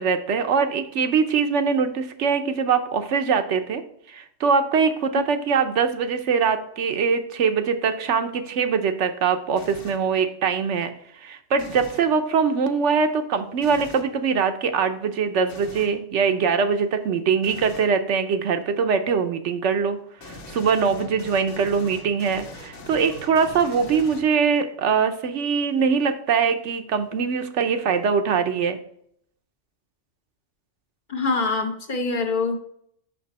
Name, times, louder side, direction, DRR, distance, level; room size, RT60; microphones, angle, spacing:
voice 1, 0.0-3.8 4.1-10.9 11.2-20.0 20.2-28.8, right 6 dB, 75° right, 8 dB, 1.0 m, -22 dB
sound 1, 9.6-10.1 11.6-12.1 13.6-14.1 15.5-16.0 17.4-17.9 20.2-24.6, left 1 dB, 75° left, 1.4 m, -41 dB
voice 2, 31.1-32.6, left 3 dB, 45° left, 3 dB, 1.0 m, -24 dB
6.0 x 5.9 x 4.1 m, 0.68 s
omnidirectional pair, 1.2 m